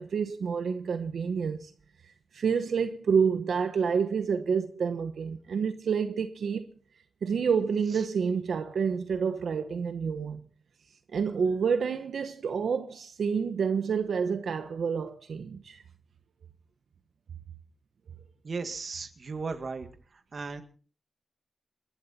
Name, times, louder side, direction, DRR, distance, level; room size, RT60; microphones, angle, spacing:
voice 1, 0.0-1.7 2.3-6.7 7.2-10.4 11.1-15.8, right 6 dB, 70° right, 1.1 m, -28 dB
voice 2, 18.4-19.9 20.3-20.6, right 4 dB, 40° right, 2.0 m, -35 dB
28.5 x 12.0 x 4.3 m
wide cardioid pair, 175°, 0 cm